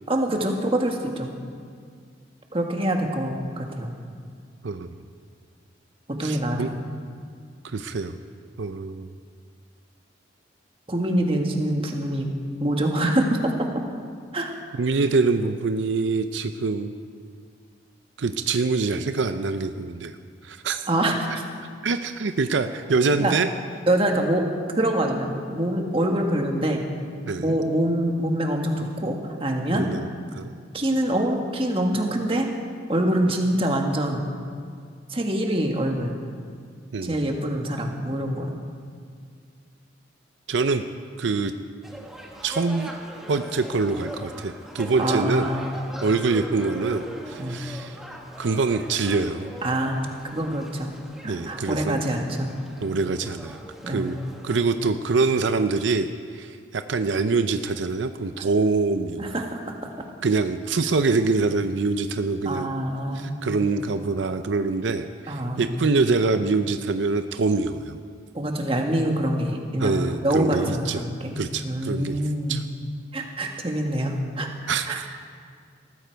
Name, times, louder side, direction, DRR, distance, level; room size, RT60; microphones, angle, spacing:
voice 1, 0.1-1.3 2.5-3.9 6.1-6.8 10.9-12.3 12.6-13.7 14.3-14.5 20.9-21.4 23.1-23.3 23.9-24.5 24.7-26.8 27.4-29.9 30.7-32.5 32.9-34.3 35.1-36.2 37.0-38.5 45.0-45.8 47.4-47.6 49.6-50.9 51.2-52.5 53.8-54.2 58.4-58.5 59.2-60.0 62.4-63.4 65.3-65.8 68.3-72.6 73.1-74.5 74.9-75.0, right 1 dB, 30° right, 2 dB, 1.5 m, -25 dB
voice 2, 6.2-6.7 7.7-8.2 8.6-9.1 14.8-16.9 18.2-20.1 20.4-20.9 21.8-23.5 27.3-27.6 29.7-30.1 30.3-30.5 36.9-37.3 40.5-40.8 41.2-41.5 42.4-42.9 43.3-45.5 46.0-48.0 48.4-49.5 51.3-52.0 52.8-53.6 53.9-54.2 54.4-59.3 60.2-62.7 63.1-68.0 69.8-71.0 71.4-72.2 72.5-72.6 74.7-75.1, right 4 dB, 80° right, 9 dB, 0.6 m, -25 dB
sound 1, 41.8-54.6, equal, ahead, 1.4 m, -40 dB
19.0 x 14.5 x 4.6 m, 2.1 s
head